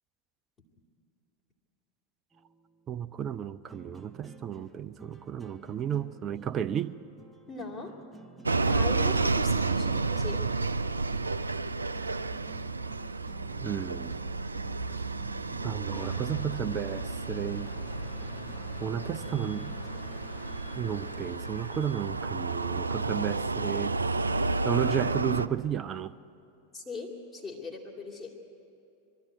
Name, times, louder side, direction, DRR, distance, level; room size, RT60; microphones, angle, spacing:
sound 1, 2.3-21.1, right 2 dB, ahead, 1.0 m, -53 dB
voice 1, 2.9-7.0 13.6-14.2 15.6-17.7 18.8-19.7 20.7-26.2, right 9 dB, 30° right, 0.5 m, -33 dB
voice 2, 7.5-8.0 8.6-10.5 26.7-28.3, left 3 dB, 25° left, 2.5 m, -39 dB
sound 2, 8.5-25.5, right 3 dB, 80° right, 0.4 m, -31 dB
sound 3, 15.9-23.6, left 6 dB, 60° left, 1.8 m, -48 dB
22.5 x 13.0 x 9.4 m
figure-of-eight pair, 90°, 0 cm